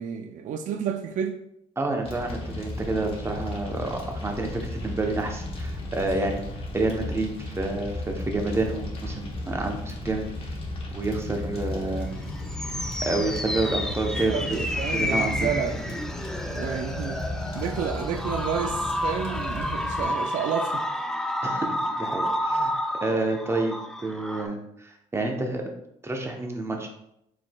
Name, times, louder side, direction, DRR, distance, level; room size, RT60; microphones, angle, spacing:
voice 1, 0.0-1.3 14.3-15.8 16.5-17.2 17.6-20.8, right 7 dB, 60° right, 6 dB, 0.4 m, -30 dB
voice 2, 1.8-6.4 6.7-10.2 10.9-12.1 13.0-14.6 14.9-15.5 21.4-25.6 26.0-26.9, right 2 dB, 20° right, 2 dB, 0.8 m, -29 dB
Fire, 2.0-20.0, left 1 dB, 40° left, 1.1 m, -34 dB
sound 1, 12.1-24.5, left 1 dB, 5° left, 0.4 m, -30 dB
4.7 x 3.8 x 2.3 m, 0.79 s
cardioid pair, 90°, 14 cm